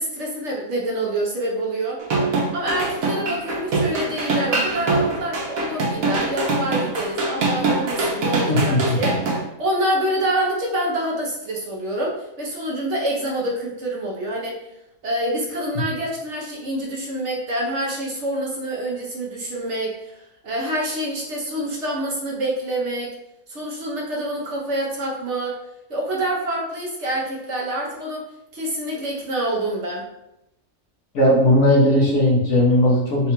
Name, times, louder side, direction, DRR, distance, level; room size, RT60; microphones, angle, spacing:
voice 1, 0.0-2.0 2.5-14.6 15.0-23.2 23.5-25.6 25.9-28.2 28.5-30.1, right 1 dB, 60° right, -3 dB, 1.1 m, -26 dB
sound 1, 2.0-9.4, right 3 dB, 75° right, 1.3 m, -23 dB
voice 2, 8.5-8.8 31.1-33.3, left 1 dB, 65° left, -4 dB, 1.4 m, -17 dB
3.8 x 2.3 x 4.3 m, 0.87 s
omnidirectional pair, 1.5 m